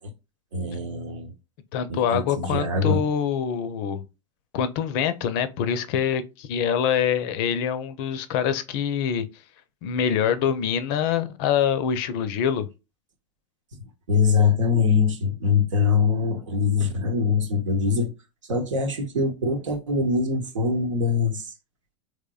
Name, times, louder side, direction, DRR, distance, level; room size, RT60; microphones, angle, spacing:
voice 1, 0.5-1.3 1.9-3.0 14.1-18.1 18.5-21.5, left 5 dB, 70° right, 0.9 m, -23 dB
voice 2, 1.7-4.1 4.5-9.3 9.8-12.7, left 8 dB, 45° left, 0.5 m, -25 dB
3.5 x 3.1 x 2.3 m
figure-of-eight pair, 90°, 17 cm